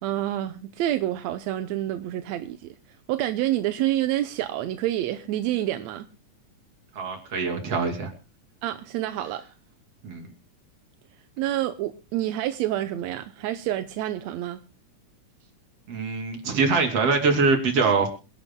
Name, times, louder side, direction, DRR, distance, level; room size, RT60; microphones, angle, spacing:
voice 1, 0.0-2.7 3.1-6.1 8.6-9.4 11.4-14.6, right 13 dB, 75° right, 1.8 m, -28 dB
voice 2, 7.0-8.1 10.0-10.3 15.9-18.1, right 4 dB, 50° right, 3.6 m, -23 dB
27.0 x 11.5 x 2.2 m
omnidirectional pair, 3.6 m